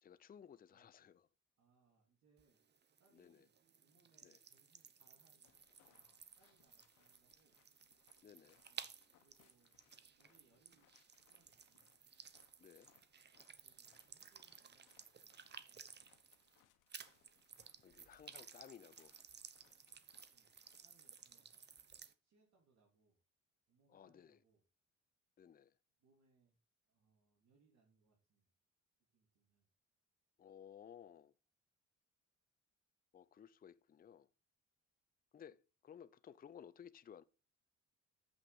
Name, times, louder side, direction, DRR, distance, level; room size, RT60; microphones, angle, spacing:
voice 1, 0.0-1.3 3.1-3.4 4.2-4.4 8.2-8.6 12.6-12.9 17.8-19.1 23.9-24.4 25.4-25.8 30.4-31.3 33.1-34.3 35.3-37.2, left 8 dB, 30° left, 0.5 m, -58 dB
voice 2, 0.7-1.1 1.6-2.6 3.0-5.6 5.8-7.6 8.7-8.9 9.2-9.8 10.1-10.9 11.2-11.9 13.6-16.4 17.7-18.0 20.3-20.5 20.8-21.6 22.2-23.2 23.7-24.6 26.0-28.5 29.1-29.7, right 4 dB, 60° right, 3.4 m, -77 dB
sound 1, 2.4-16.6 16.9-22.1, right 6 dB, 35° right, 0.8 m, -58 dB
sound 2, 5.4-21.8, left 10 dB, 90° left, 1.2 m, -76 dB
7.9 x 5.9 x 5.1 m
cardioid pair, 90°, 30 cm